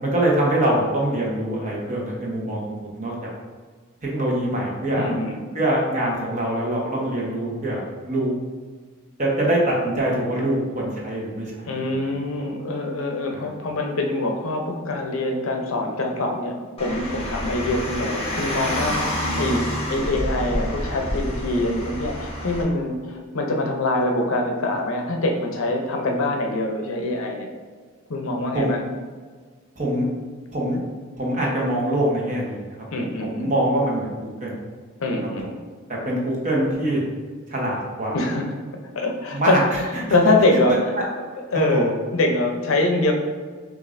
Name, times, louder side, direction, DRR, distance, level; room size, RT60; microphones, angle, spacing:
voice 1, 0.0-3.3 4.0-5.1 5.5-8.3 9.2-11.8 13.3-13.5 19.3-19.6 28.5-28.7 29.8-30.0 30.5-30.8 31.2-32.7 33.2-34.5 35.9-37.0 37.5-38.2 39.3-39.8 40.7-40.8 41.5-41.9, right 1 dB, 35° right, -3 dB, 0.9 m, -24 dB
voice 2, 5.0-5.4 11.7-27.5 28.1-28.8 32.9-33.5 35.0-35.5 38.1-38.6 38.9-40.9 41.3-43.1, left 2 dB, 65° left, 3 dB, 0.6 m, -24 dB
Car, 16.8-22.6, left 1 dB, 25° left, 0.9 m, -28 dB
6.4 x 2.5 x 2.5 m, 1.5 s
head